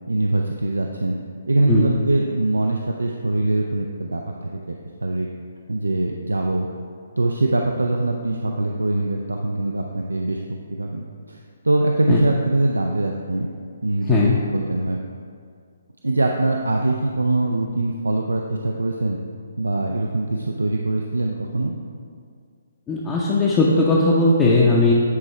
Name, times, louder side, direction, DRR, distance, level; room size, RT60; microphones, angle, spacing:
voice 1, 0.1-1.2 1.5-4.8 5.0-5.3 5.7-6.7 7.2-11.4 11.6-13.5 13.8-15.0 16.0-19.2 19.6-21.8, right 2 dB, 75° right, 1 dB, 0.4 m, -23 dB
voice 2, 22.9-24.9, left 2 dB, 15° left, -5 dB, 0.6 m, -18 dB
9.4 x 4.4 x 3.2 m, 2.1 s
figure-of-eight pair, 135°, 0 cm